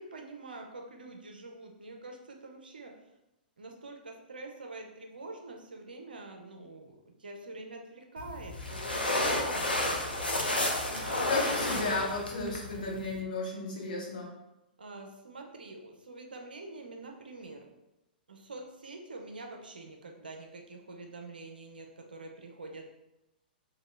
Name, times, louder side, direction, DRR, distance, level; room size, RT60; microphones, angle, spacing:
voice 1, 0.0-2.9 3.6-10.5 10.9-11.5 14.8-17.7 18.3-22.8, right 2 dB, 70° right, 2 dB, 0.5 m, -46 dB
sound 1, 8.2-13.2, left 1 dB, 80° left, 0.6 m, -31 dB
voice 2, 11.3-14.3, left 3 dB, 60° left, -3 dB, 0.9 m, -33 dB
2.8 x 2.2 x 3.2 m, 0.94 s
figure-of-eight pair, 110°, 5 cm